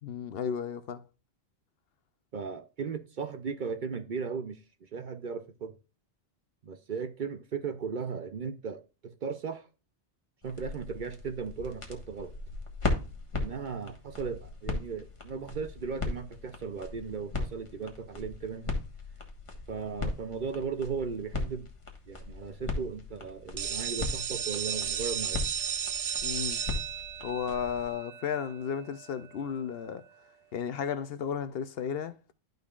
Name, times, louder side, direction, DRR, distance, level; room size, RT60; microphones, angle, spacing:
voice 1, 0.0-1.0 26.2-26.6 27.2-30.1 30.5-32.1, left 7 dB, 60° left, 0.8 m, -34 dB
voice 2, 2.3-5.8 6.6-9.7 10.4-12.3 13.3-18.8 19.7-21.7 22.1-25.5, right 5 dB, 50° right, 0.7 m, -37 dB
sound 1, 10.4-27.9, left 3 dB, 25° left, 1.4 m, -38 dB
sound 2, 23.6-29.2, right 8 dB, 75° right, 0.3 m, -34 dB
12.0 x 5.2 x 2.3 m
omnidirectional pair, 1.2 m